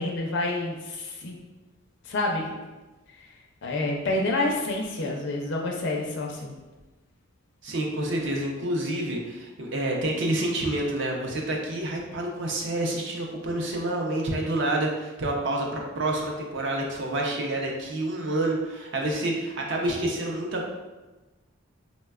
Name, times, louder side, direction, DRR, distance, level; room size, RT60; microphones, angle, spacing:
voice 1, 0.0-1.4 2.0-2.5 3.2-3.3 3.6-6.6, left 2 dB, 55° left, 0 dB, 0.4 m, -28 dB
voice 2, 7.6-20.7, right 1 dB, 55° right, 0 dB, 0.5 m, -28 dB
4.1 x 2.1 x 2.3 m, 1.2 s
head